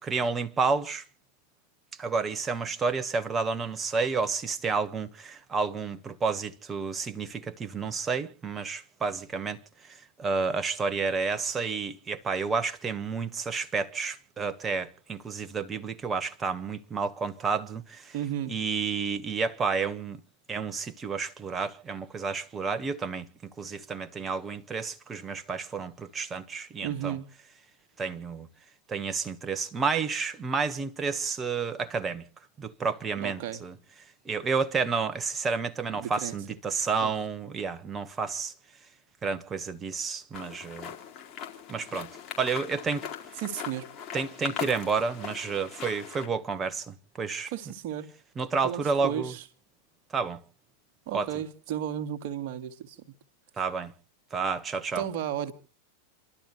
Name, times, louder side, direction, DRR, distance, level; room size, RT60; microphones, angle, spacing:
voice 1, 0.0-1.0 2.0-9.6 9.9-18.1 18.5-20.2 20.5-27.2 28.0-28.5 28.9-32.2 32.6-33.7 34.2-38.5 39.2-40.9 41.7-42.1 42.4-43.0 44.1-47.5 48.4-49.3 50.1-50.4 51.1-51.3 53.6-53.9 54.3-55.0, right 5 dB, 20° right, 1.3 m, -30 dB
voice 2, 18.1-18.6 26.8-27.3 33.2-33.6 35.9-36.4 37.0-37.1 43.4-43.9 47.5-48.1 48.6-49.5 51.1-53.0 55.0-55.5, right 10 dB, 45° right, 1.9 m, -33 dB
sound 1, 40.3-46.3, left 8 dB, 35° left, 4.3 m, -40 dB
29.5 x 12.5 x 2.9 m
figure-of-eight pair, 90°, 0 cm